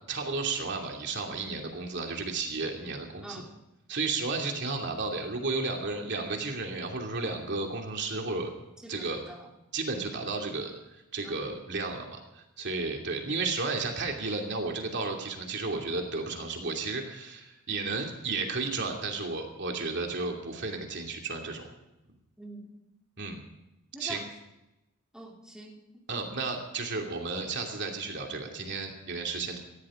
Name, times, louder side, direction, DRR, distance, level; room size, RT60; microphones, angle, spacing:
voice 1, 0.1-3.4 3.9-8.5 8.9-9.2 9.7-10.7 11.1-21.6 23.2-23.4 24.0-24.2 26.1-29.6, right 3 dB, 55° right, 2 dB, 2.7 m, -33 dB
voice 2, 3.2-3.6 8.8-9.5 11.2-11.5 22.4-22.8 23.9-24.3 25.1-26.0, right 1 dB, 5° right, -2 dB, 2.8 m, -45 dB
19.0 x 16.0 x 3.8 m, 0.94 s
head